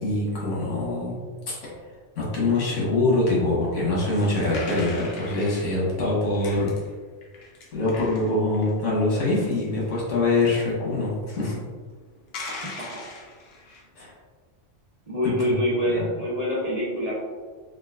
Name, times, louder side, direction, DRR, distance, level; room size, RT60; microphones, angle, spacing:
voice 1, 0.0-1.2 1.5-1.6 2.2-6.7 7.7-11.6 14.0-14.1 15.2-15.5 15.9-16.1, left 2 dB, 80° left, -5 dB, 1.3 m, -24 dB
sound 1, 4.1-5.7 6.3-6.9 7.2-8.9 9.3-9.8 10.4-10.6 12.3-13.8, left 3 dB, 60° left, 0.8 m, -40 dB
voice 2, 15.1-17.1, equal, 45° right, -6 dB, 0.5 m, -25 dB
3.7 x 2.2 x 2.3 m, 1.5 s
omnidirectional pair, 1.2 m